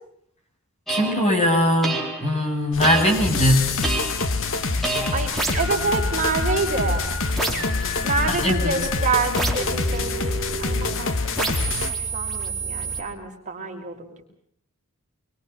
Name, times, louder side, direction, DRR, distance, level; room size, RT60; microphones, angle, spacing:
voice 1, 0.9-3.8 8.3-8.9, equal, 30° left, 3 dB, 6.9 m, -21 dB
sound 1, 0.9-1.3 1.8-2.5 2.8-3.4 3.8-4.4 4.8-11.0 11.3-13.0, right 2 dB, ahead, 4.5 m, -29 dB
sound 2, 2.7-11.9, left 3 dB, 65° left, 1.9 m, -26 dB
voice 2, 5.1-7.0 8.0-14.1, right 4 dB, 35° right, 1 dB, 5.1 m, -27 dB
25.5 x 24.0 x 7.1 m, 0.67 s
head